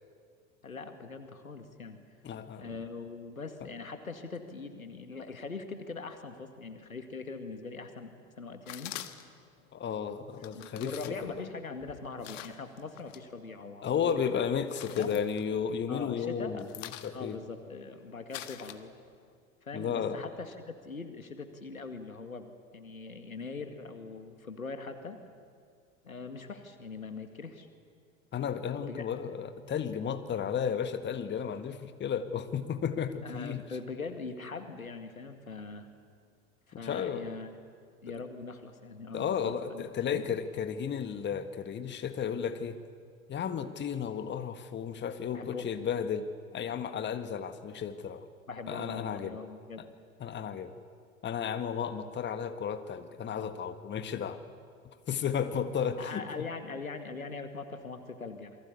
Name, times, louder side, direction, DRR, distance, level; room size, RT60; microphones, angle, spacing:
voice 1, 0.6-2.0 2.6-8.9 10.5-14.5 15.0-15.1 15.9-16.8 17.1-18.9 19.6-20.5 20.8-25.2 26.0-27.7 28.7-29.1 33.2-35.9 36.7-37.5 38.0-39.8 40.1-40.2 45.3-45.7 48.5-49.8 56.0-58.6, left 4 dB, 85° left, 7 dB, 2.2 m, -42 dB
voice 2, 2.2-2.7 9.7-11.5 13.8-17.4 19.7-20.2 28.3-33.6 36.8-37.3 39.1-42.8 43.3-48.3 48.7-49.4 49.8-49.9 50.2-50.7 51.2-54.4 55.1-56.2, left 7 dB, 25° left, 9 dB, 1.7 m, -33 dB
sound 1, 8.7-9.5 10.3-13.2 13.6-14.2 14.5-16.0 16.3-19.3, left 13 dB, 60° left, 1.7 m, -46 dB
28.0 x 23.0 x 8.5 m, 2.1 s
figure-of-eight pair, 80°, 41 cm